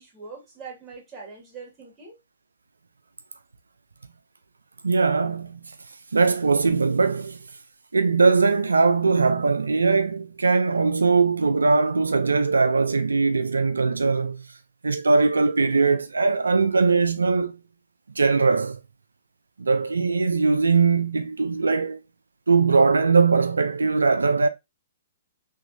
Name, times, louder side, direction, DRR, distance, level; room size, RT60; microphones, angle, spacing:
voice 1, 0.0-2.2, right 4 dB, 15° right, 2.0 m, -42 dB
voice 2, 4.8-5.6 6.1-7.4 7.9-14.5 14.8-17.6 18.2-18.8 19.6-22.0 22.5-24.5, right 4 dB, 90° right, 0.3 m, -20 dB
3.6 x 3.3 x 2.6 m
hypercardioid pair, 125°, 0 cm